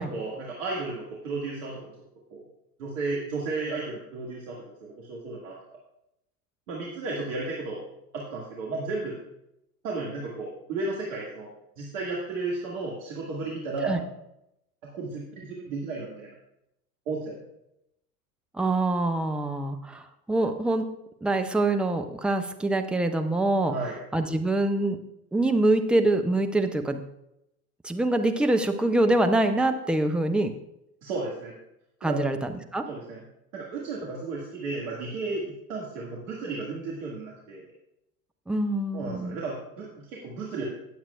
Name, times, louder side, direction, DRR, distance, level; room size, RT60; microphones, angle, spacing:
voice 1, 0.0-1.9 2.3-2.4 2.8-5.6 6.7-7.8 8.1-9.2 9.8-11.5 11.8-14.0 14.9-16.3 17.1-17.4 23.7-24.0 31.0-31.5 32.0-32.3 32.9-33.2 33.5-37.6 38.9-40.6, right 3 dB, 60° right, -3 dB, 2.0 m, -33 dB
voice 2, 18.5-20.9 21.2-23.7 24.1-25.0 25.3-27.0 27.8-30.5 32.0-32.9 38.5-39.4, right 2 dB, ahead, 5 dB, 0.4 m, -25 dB
18.5 x 7.3 x 2.3 m, 0.83 s
figure-of-eight pair, 80°, 46 cm